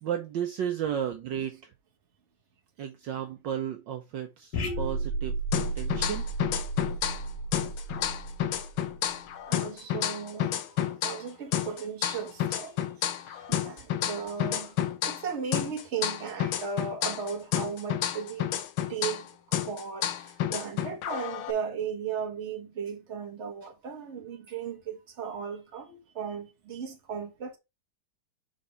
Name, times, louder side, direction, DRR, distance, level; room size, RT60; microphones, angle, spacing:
voice 1, 0.0-1.7 2.8-5.4 5.8-6.3, right 9 dB, 70° right, 1.4 m, -33 dB
sound 1, 4.5-9.2, right 2 dB, 55° left, 2.0 m, -33 dB
sound 2, 5.5-7.3 7.5-11.3 11.5-15.3 15.5-19.3 19.5-21.5, left 11 dB, 75° left, 1.6 m, -30 dB
voice 2, 9.5-12.8 13.2-18.5 18.9-27.6, right 6 dB, 35° right, 1.5 m, -36 dB
5.2 x 4.6 x 4.4 m
omnidirectional pair, 2.3 m